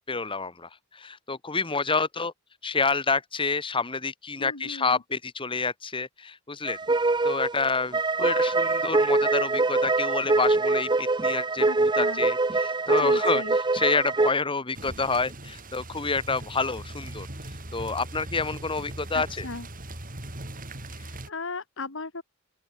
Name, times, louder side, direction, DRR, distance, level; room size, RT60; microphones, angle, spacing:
voice 1, 0.1-2.3 2.6-6.8 7.2-17.3 17.7-19.5, left 4 dB, 25° left, 1.8 m, -28 dB
voice 2, 4.4-5.0 11.6-12.3 13.0-13.6 19.1-19.7 20.9-22.2, left 3 dB, 60° left, 2.5 m, -37 dB
sound 1, 6.7-14.3, right 3 dB, 20° right, 0.7 m, -24 dB
sound 2, 14.7-21.3, right 1 dB, 40° right, 5.8 m, -40 dB
open air
head